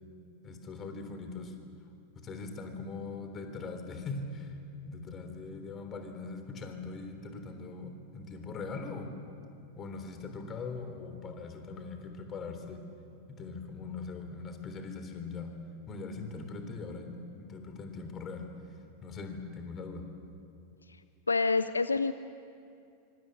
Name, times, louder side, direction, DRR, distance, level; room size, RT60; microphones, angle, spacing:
voice 1, 0.4-1.6 2.1-4.6 4.9-9.1 9.8-12.8 13.3-15.5 15.9-18.5 19.0-20.1, left 4 dB, 25° left, 6 dB, 3.5 m, -41 dB
voice 2, 21.3-22.1, left 4 dB, 80° left, 13 dB, 0.6 m, -27 dB
25.5 x 24.5 x 7.7 m, 2.5 s
figure-of-eight pair, 90°, 0 cm